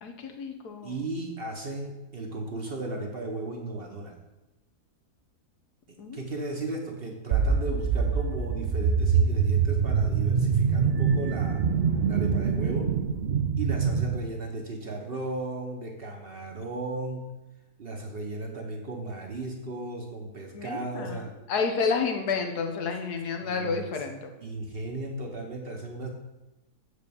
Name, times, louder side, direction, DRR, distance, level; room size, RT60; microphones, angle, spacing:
voice 1, 0.0-1.0 6.0-6.2 20.5-24.3, left 5 dB, 80° left, 5 dB, 1.5 m, -30 dB
voice 2, 0.8-4.2 5.9-11.6 12.0-12.9 13.6-17.3 17.8-21.3 23.4-23.9 24.4-26.1, right 2 dB, 45° right, 1 dB, 1.0 m, -35 dB
sound 1, 7.3-14.2, right 6 dB, 80° right, 0.5 m, -24 dB
6.7 x 4.9 x 6.9 m, 1.0 s
omnidirectional pair, 1.7 m